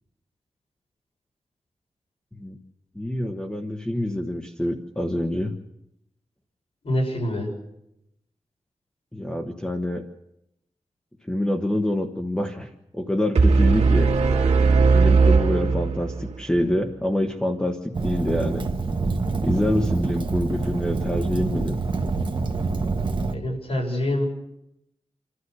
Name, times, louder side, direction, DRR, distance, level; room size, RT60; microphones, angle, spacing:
voice 1, 2.9-5.5 9.1-10.0 11.3-12.7 12.9-14.1 14.9-18.7 19.4-21.8, left 1 dB, 5° left, 4 dB, 1.2 m, -26 dB
voice 2, 6.8-7.5 23.3-24.3, left 1 dB, 60° left, 0 dB, 6.8 m, -25 dB
sound 1, 13.3-16.4, right 4 dB, 70° right, 2.1 m, -18 dB
Fire, 17.9-23.3, right 3 dB, 45° right, 1.3 m, -26 dB
28.0 x 12.5 x 8.0 m, 0.85 s
wide cardioid pair, 130°, 11 cm